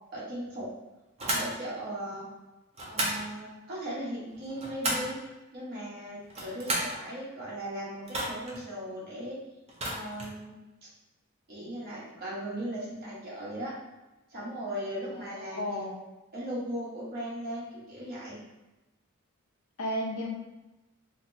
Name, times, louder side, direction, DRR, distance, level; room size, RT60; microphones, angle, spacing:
voice 1, 0.1-0.7 1.2-2.2 2.8-5.2 5.5-9.4 9.8-10.5 10.8-10.9 11.5-13.7 14.3-15.8 16.3-18.4, right 1 dB, 45° right, -7 dB, 1.1 m, -37 dB
sound 1, 1.2-1.5 2.7-3.2 4.3-5.2 6.2-7.0 8.1-8.6 9.7-10.4, right 1 dB, 30° right, 0.6 m, -32 dB
voice 2, 15.1-16.0 19.8-20.3, left 1 dB, 85° left, -1 dB, 0.7 m, -33 dB
4.1 x 2.1 x 2.6 m, 1.0 s
head